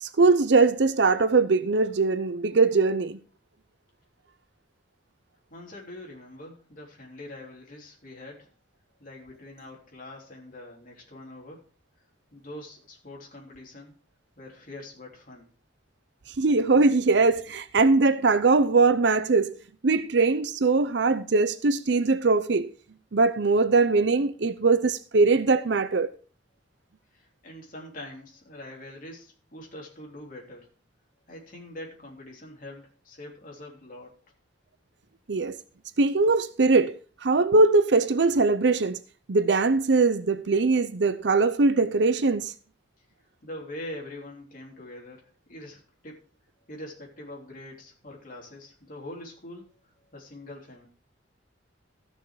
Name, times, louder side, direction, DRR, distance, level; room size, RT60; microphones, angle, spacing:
voice 1, 0.0-3.2 16.4-19.6 19.8-22.7 23.1-26.1 35.3-35.6 36.0-39.0 39.3-42.5, right 3 dB, 70° right, 0.6 m, -21 dB
voice 2, 5.5-8.5 9.0-11.6 12.3-13.9 14.4-15.5 27.1-30.7 31.3-34.1 43.4-46.2 46.7-49.7 50.1-50.9, left 1 dB, 45° left, 3.4 m, -43 dB
14.5 x 6.4 x 4.8 m
head